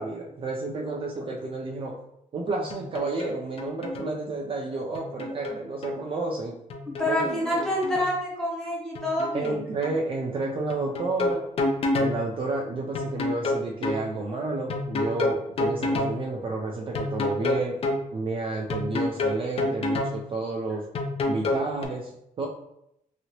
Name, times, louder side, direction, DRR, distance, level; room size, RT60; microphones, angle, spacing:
voice 1, 0.0-2.0 2.3-6.6 7.1-7.6 9.3-11.4 12.0-17.8 18.1-20.8 21.3-22.1 22.4-22.5, right 3 dB, 40° right, -1 dB, 0.3 m, -31 dB
sound 1, 2.7-3.3 3.6-4.1 4.9-6.0 6.7-8.1 8.9-9.6 9.8-10.0 10.7-12.2 12.9-14.0 14.7-16.1 16.9-18.0 18.7-20.2 20.9-21.8, left 2 dB, 45° left, 0.4 m, -28 dB
voice 2, 7.0-9.5, left 1 dB, 5° left, -4 dB, 0.9 m, -27 dB
2.9 x 2.8 x 2.8 m, 0.79 s
wide cardioid pair, 170°, 14 cm